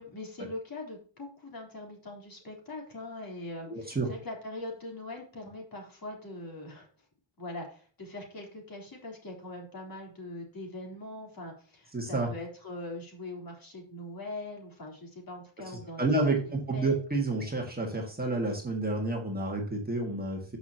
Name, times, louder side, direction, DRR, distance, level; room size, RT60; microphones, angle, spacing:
voice 1, 0.0-6.9 7.4-17.0, left 2 dB, 45° left, 0 dB, 3.7 m, -42 dB
voice 2, 3.7-4.1 11.9-12.3 16.0-20.6, right 2 dB, 20° right, 0 dB, 1.9 m, -30 dB
13.5 x 6.1 x 2.9 m, 0.40 s
wide cardioid pair, 170°, 49 cm